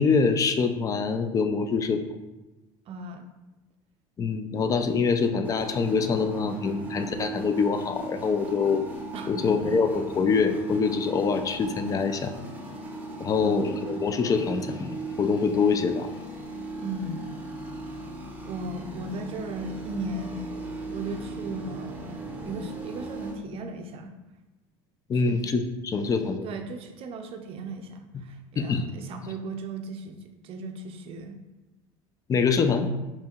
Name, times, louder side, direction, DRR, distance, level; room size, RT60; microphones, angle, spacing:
voice 1, 0.0-2.0 4.2-8.8 9.3-12.3 13.2-16.1 25.1-26.5 28.1-28.2 28.6-28.8 32.3-32.9, left 5 dB, 25° left, 8 dB, 0.3 m, -25 dB
voice 2, 2.9-3.3 9.1-9.7 13.4-13.9 16.8-17.3 17.9-18.0 18.4-20.6 20.9-24.1 25.1-25.4 26.4-31.4 32.5-32.7, right 2 dB, 45° right, 5 dB, 0.5 m, -37 dB
sound 1, 5.4-23.3, right 2 dB, 10° right, 0.7 m, -37 dB
4.3 x 2.8 x 2.4 m, 1.1 s
supercardioid pair, 105°, 13 cm